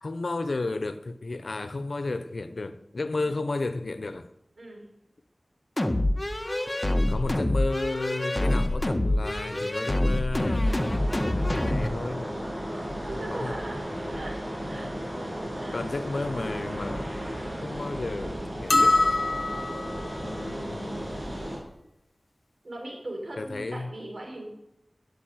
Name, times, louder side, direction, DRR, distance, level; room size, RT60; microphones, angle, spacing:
voice 1, 0.0-4.3 7.1-12.5 13.1-13.6 14.8-14.9 15.7-17.2 17.6-19.0 20.2-21.0 23.4-23.9, left 3 dB, 75° left, 1.0 m, -33 dB
sound 1, 5.8-11.9, left 1 dB, 25° left, 1.6 m, -26 dB
sound 2, 10.6-21.6, equal, 25° right, 7.1 m, -34 dB
voice 2, 13.1-13.8 14.1-14.4 14.7-14.9 15.6-15.8 22.6-24.4, right 1 dB, 70° right, 7.0 m, -38 dB
sound 3, 18.7-20.0, left 2 dB, 55° left, 0.6 m, -23 dB
13.5 x 9.7 x 9.4 m
wide cardioid pair, 55°, 0 cm